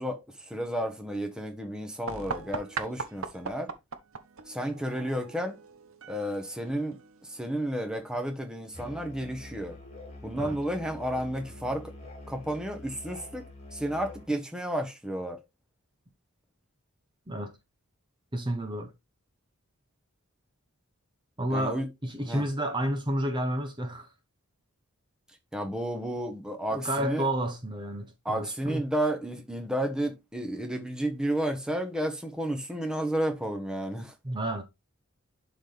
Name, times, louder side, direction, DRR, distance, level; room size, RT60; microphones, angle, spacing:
voice 1, 0.0-3.7 4.4-5.6 6.1-9.8 10.2-11.9 12.3-15.4 21.5-21.9 22.2-22.4 25.5-27.3 28.2-34.1, right 1 dB, 5° right, 1.1 m, -32 dB
sound 1, 2.1-7.6, right 5 dB, 65° right, 1.0 m, -40 dB
Musical instrument, 8.7-14.3, left 2 dB, 30° left, 1.8 m, -46 dB
voice 2, 17.3-17.6 18.3-18.9 21.4-24.1 26.7-28.8 34.2-34.6, right 1 dB, 20° right, 0.8 m, -31 dB
11.0 x 4.0 x 3.3 m
head